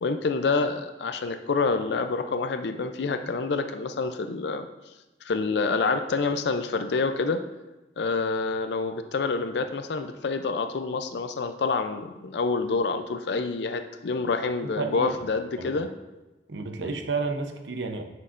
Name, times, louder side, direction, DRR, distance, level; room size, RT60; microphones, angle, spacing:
voice 1, 0.0-4.7 5.2-7.4 8.0-15.9 16.8-16.9, left 4 dB, 70° left, 8 dB, 0.4 m, -27 dB
voice 2, 14.8-15.2 15.6-15.7 16.5-18.0, right 4 dB, 90° right, 5 dB, 0.8 m, -31 dB
9.4 x 6.4 x 2.5 m, 1.1 s
head